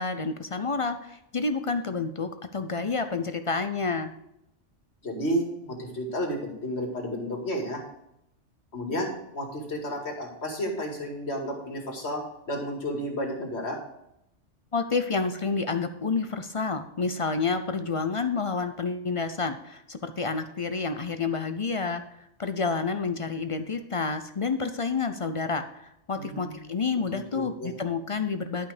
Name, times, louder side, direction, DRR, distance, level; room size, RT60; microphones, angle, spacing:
voice 1, 0.0-4.1 14.7-28.7, left 4 dB, 40° left, 9 dB, 0.4 m, -29 dB
voice 2, 5.0-7.8 8.7-13.8 26.2-26.7 27.1-27.7, equal, 60° left, 1 dB, 2.4 m, -32 dB
12.0 x 5.6 x 5.0 m, 0.81 s
omnidirectional pair, 1.3 m